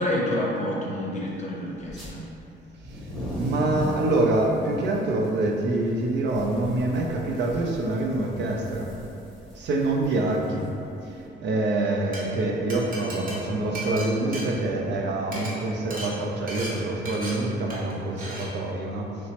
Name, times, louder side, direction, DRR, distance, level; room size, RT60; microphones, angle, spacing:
voice 1, 0.0-2.3, left 1 dB, 35° left, -3 dB, 0.6 m, -28 dB
sound 1, 1.8-2.1 2.7-11.2, equal, ahead, 0.8 m, -38 dB
voice 2, 2.8-8.9 9.6-10.7 11.0-19.3, right 2 dB, 65° right, 1 dB, 0.4 m, -26 dB
Glass, 11.9-12.2 12.7-15.0 15.2-15.5 15.9-16.1 16.5-16.7 17.1-17.3 17.7-17.9 18.2-18.5, right 1 dB, 45° right, 0.8 m, -36 dB
3.1 x 2.0 x 2.8 m, 2.7 s
cardioid pair, 90°, 20 cm